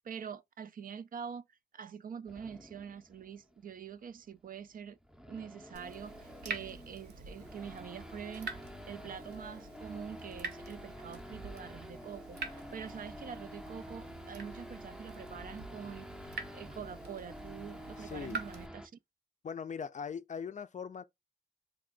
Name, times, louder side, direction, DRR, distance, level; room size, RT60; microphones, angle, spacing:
voice 1, 0.0-5.0 5.3-8.5 8.9-18.9, right 7 dB, 55° right, 0.4 m, -45 dB
Race car auto racing / Idling / Accelerating revving vroom, 2.3-18.9, equal, 5° right, 0.5 m, -49 dB
Water tap faucet / Drip, 5.7-18.7, right 4 dB, 85° right, 1.0 m, -46 dB
voice 2, 18.0-18.4 19.4-21.0, left 6 dB, 45° left, 0.4 m, -40 dB
3.4 x 2.2 x 3.7 m
cardioid pair, 65°, 17 cm